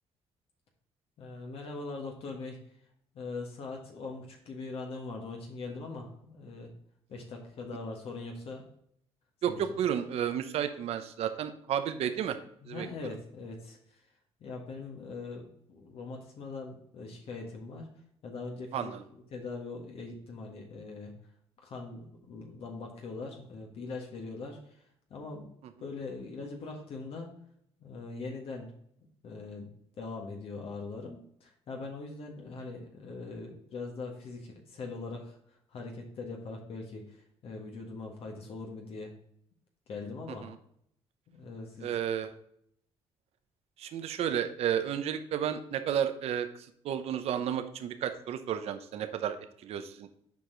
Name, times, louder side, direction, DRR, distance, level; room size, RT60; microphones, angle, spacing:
voice 1, 1.2-2.6 3.1-6.7 7.1-8.6 9.5-9.6 12.6-14.0 14.4-17.9 18.2-21.1 21.6-24.8 25.1-25.5 25.8-27.3 27.8-28.7 29.2-29.7 30.0-35.4 35.7-39.1 39.9-40.5 41.3-42.0, left 3 dB, 60° left, 1 dB, 1.5 m, -41 dB
voice 2, 9.4-12.4 12.7-12.9 18.7-19.0 40.4-40.5 41.8-42.4 43.8-46.5 46.8-49.4 49.6-50.1, right 9 dB, 70° right, 9 dB, 0.7 m, -32 dB
7.2 x 4.7 x 3.8 m, 0.69 s
cardioid pair, 90°, 11 cm